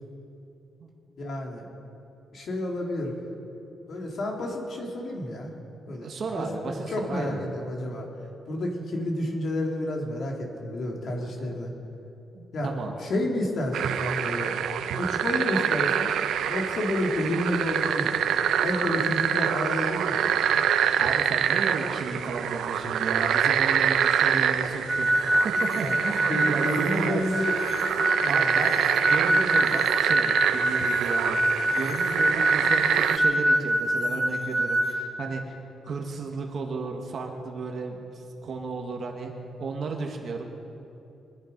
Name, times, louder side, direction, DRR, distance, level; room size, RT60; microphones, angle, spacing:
voice 1, 1.2-1.7 2.3-3.1 3.9-5.5 5.9-6.1 6.3-8.1 8.5-11.7 12.5-14.5 15.0-16.1 16.5-18.2 18.6-20.3 25.8-27.6 28.2-28.6, left 1 dB, 55° left, 0 dB, 2.9 m, -30 dB
voice 2, 5.9-7.4 12.3-12.9 21.0-25.1 25.4-27.3 28.3-28.8 29.0-31.4 31.7-35.5 35.8-38.1 38.4-39.3 39.6-40.4, right 4 dB, 50° right, 2 dB, 1.6 m, -33 dB
sound 1, 13.7-33.2, right 9 dB, 90° right, 0.6 m, -26 dB
sound 2, 24.9-34.9, right 1 dB, 10° right, 2.6 m, -25 dB
23.5 x 11.0 x 5.3 m, 2.9 s
cardioid pair, 130°, 0 cm